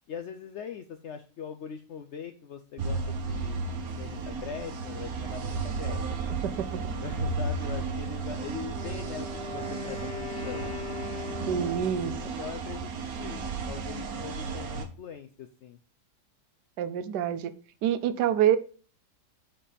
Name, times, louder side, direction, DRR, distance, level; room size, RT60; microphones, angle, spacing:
voice 1, 0.1-3.6 3.9-6.4 7.0-11.0 11.7-12.9 13.2-15.8, left 7 dB, 75° left, 8 dB, 0.6 m, -41 dB
sound 1, 2.8-14.9, right 4 dB, 60° right, 1.4 m, -34 dB
voice 2, 6.4-6.8 11.5-12.1 16.8-17.5 17.8-18.6, right 10 dB, 80° right, 13 dB, 1.3 m, -26 dB
Wind instrument woodwind instrument, 8.6-12.1, left 4 dB, 35° left, 1.0 m, -40 dB
7.5 x 4.2 x 5.1 m, 0.39 s
omnidirectional pair, 1.8 m